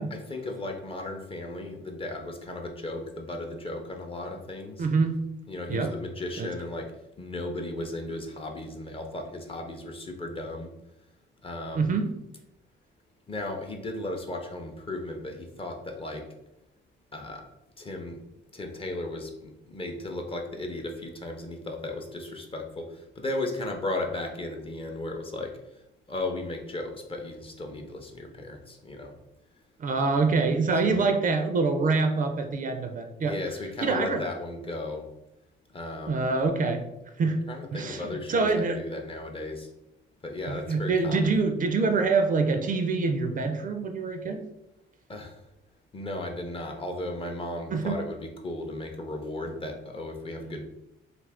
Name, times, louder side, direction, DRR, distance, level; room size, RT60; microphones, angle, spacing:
voice 1, 0.1-4.9 5.5-6.9 7.2-10.7 11.4-11.9 13.3-16.3 17.1-17.4 17.8-18.2 18.5-25.6 26.1-29.1 30.8-30.9 33.2-35.0 35.7-36.2 37.5-39.7 40.2-41.3 45.1-45.4 45.9-50.7, left 2 dB, 30° left, 3 dB, 0.6 m, -35 dB
voice 2, 4.8-5.2 5.7-5.9 6.4-6.5 11.7-12.1 29.8-33.3 33.8-34.2 36.1-36.8 37.2-37.4 37.7-38.8 40.5-44.4 47.7-48.0 50.5-50.6, right 4 dB, 45° right, 6 dB, 0.4 m, -25 dB
2.6 x 2.4 x 3.4 m, 0.88 s
cardioid pair, 90°, 20 cm